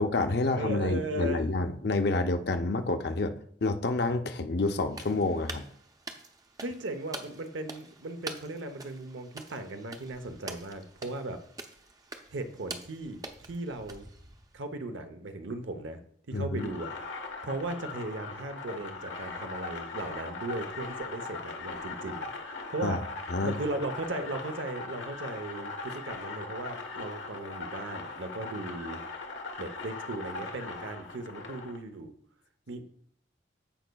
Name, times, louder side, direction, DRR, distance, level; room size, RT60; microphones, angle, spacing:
voice 1, 0.0-3.4 3.6-5.6 16.3-16.7 22.8-23.0 23.3-23.5, left 2 dB, 55° left, 7 dB, 0.6 m, -28 dB
voice 2, 0.6-1.5 6.6-11.4 12.3-14.0 14.5-16.0 16.3-16.9 17.4-22.3 22.7-23.0 23.4-29.0 29.6-32.1 32.7-32.8, right 2 dB, 80° right, 8 dB, 0.8 m, -37 dB
sound 1, 4.9-14.6, right 3 dB, 20° right, 0.5 m, -46 dB
sound 2, 16.6-31.8, left 3 dB, 80° left, 1.1 m, -40 dB
14.5 x 5.2 x 2.3 m, 0.62 s
head